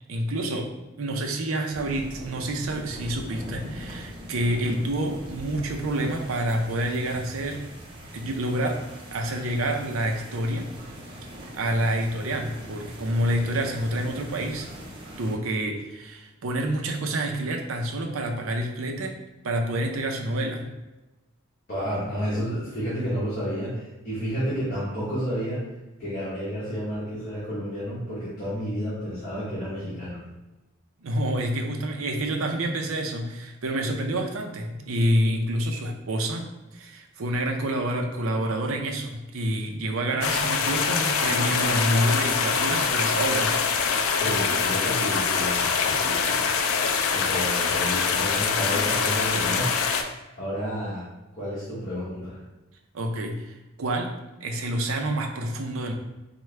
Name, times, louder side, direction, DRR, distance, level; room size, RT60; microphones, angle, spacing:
voice 1, 0.1-0.7 1.0-7.6 8.1-8.8 9.1-10.7 11.6-14.7 15.2-19.2 19.4-20.7 31.0-43.6 52.9-54.1 54.4-55.9, right 1 dB, 85° right, 3 dB, 0.5 m, -28 dB
sound 1, 1.7-15.4, equal, 25° right, 0.6 m, -41 dB
voice 2, 21.7-25.6 26.0-30.2 44.1-46.4 47.1-49.8 50.4-51.0 51.3-52.4, equal, 45° left, -11 dB, 1.3 m, -31 dB
sound 2, 40.2-50.0, left 5 dB, 90° left, 0.4 m, -24 dB
4.5 x 2.2 x 3.2 m, 1.0 s
head